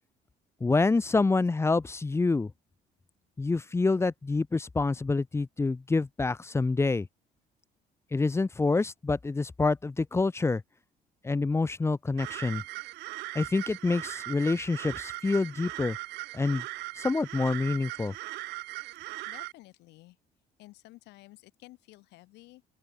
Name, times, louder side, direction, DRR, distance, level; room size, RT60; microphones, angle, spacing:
voice 1, 0.6-2.5 3.4-7.1 8.1-10.6 11.2-12.6 13.3-16.0 16.3-16.6 17.0-18.1, left 3 dB, 15° left, 0.7 m, -27 dB
sound 1, 12.2-19.5, right 20 dB, 85° right, 1.0 m, -39 dB
voice 2, 19.3-20.2 20.6-22.6, left 19 dB, 85° left, 7.3 m, -52 dB
open air
cardioid pair, 110°, 17 cm